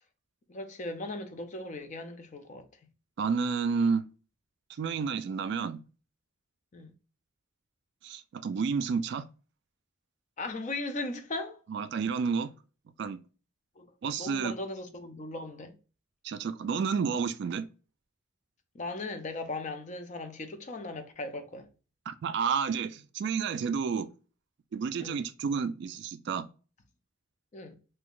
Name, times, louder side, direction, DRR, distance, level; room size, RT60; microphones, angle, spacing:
voice 1, 0.5-2.6 6.7-6.9 10.4-11.6 13.8-13.9 14.2-15.8 18.7-21.7 25.0-25.2 27.5-27.8, left 2 dB, 40° left, 0.5 m, -38 dB
voice 2, 3.2-4.1 4.8-5.8 8.0-9.3 11.7-12.5 13.0-13.2 14.0-14.5 16.2-17.7 22.1-24.1 24.7-26.5, right 5 dB, 60° right, 0.3 m, -30 dB
2.7 x 2.4 x 3.6 m
head